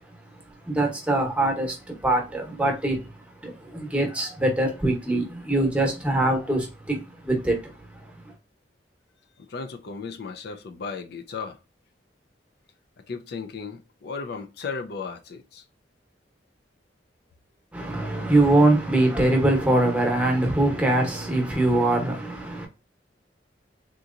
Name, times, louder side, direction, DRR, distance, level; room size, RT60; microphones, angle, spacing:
voice 1, 0.0-8.3 17.7-22.7, right 2 dB, 5° right, 1.0 m, -23 dB
voice 2, 9.4-11.6 13.1-15.6, left 5 dB, 60° left, 0.5 m, -35 dB
3.7 x 2.8 x 2.5 m
head